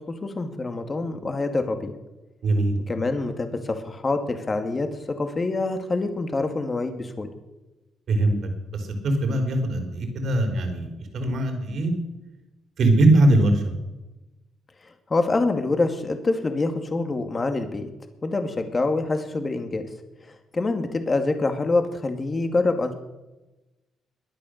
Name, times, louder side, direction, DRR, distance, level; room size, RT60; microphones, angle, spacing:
voice 1, 0.1-1.9 2.9-7.3 15.1-17.9 18.2-19.9 20.3-22.9, left 3 dB, 30° left, 6 dB, 2.2 m, -26 dB
voice 2, 2.4-2.7 8.1-11.9 12.8-13.7, right 1 dB, 60° right, 5 dB, 4.2 m, -21 dB
22.0 x 8.6 x 6.6 m, 1.0 s
cardioid pair, 90°, 0 cm